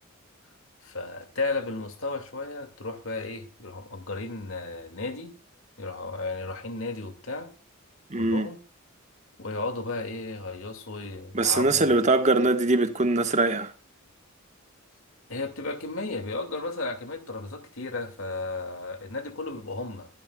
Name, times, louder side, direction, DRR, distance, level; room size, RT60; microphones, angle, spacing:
voice 1, 0.8-5.3 5.8-7.5 8.1-8.6 9.4-12.0 15.3-20.1, left 3 dB, 70° left, 2.4 m, -34 dB
voice 2, 8.1-8.5 11.3-13.7, right 2 dB, 35° right, 1.4 m, -22 dB
22.5 x 12.0 x 2.4 m
head